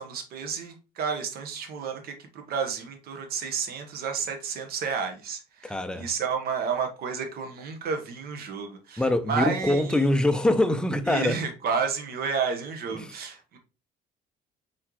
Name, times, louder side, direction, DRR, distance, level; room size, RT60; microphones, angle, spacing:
voice 1, 0.0-10.0 11.1-13.6, right 6 dB, 65° right, 1.1 m, -31 dB
voice 2, 5.6-6.1 9.0-11.4 12.9-13.2, left 1 dB, 5° left, 0.6 m, -24 dB
4.3 x 3.9 x 3.0 m
cardioid pair, 110°, 17 cm